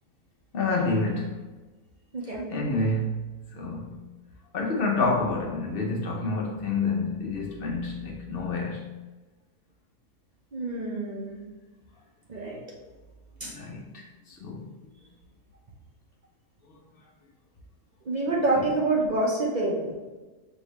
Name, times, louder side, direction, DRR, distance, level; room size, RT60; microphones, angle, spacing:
voice 1, 0.5-1.5 2.5-4.0 4.5-8.9 13.4-14.7, left 3 dB, 55° left, -2 dB, 0.7 m, -28 dB
voice 2, 2.1-2.5 10.5-11.4 12.3-12.6 13.4-13.5 18.0-19.9, right 2 dB, 45° right, -4 dB, 0.5 m, -27 dB
5.0 x 2.7 x 3.0 m, 1.2 s
omnidirectional pair, 1.7 m